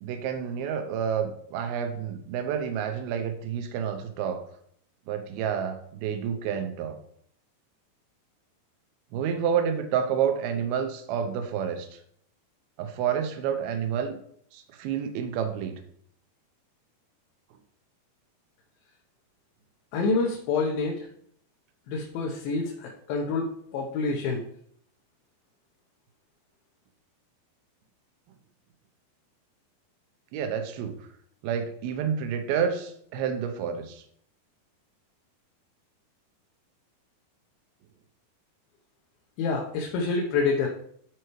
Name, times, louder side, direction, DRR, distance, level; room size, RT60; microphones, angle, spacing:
voice 1, 0.0-4.4 5.1-7.0 9.1-11.9 12.8-14.1 14.5-15.8 30.3-31.0 31.4-34.0, right 8 dB, 85° right, 7 dB, 2.7 m, -29 dB
voice 2, 19.9-21.1 21.9-24.4 39.4-40.7, left 4 dB, 75° left, -2 dB, 2.7 m, -27 dB
12.5 x 4.6 x 3.1 m, 0.65 s
omnidirectional pair, 4.3 m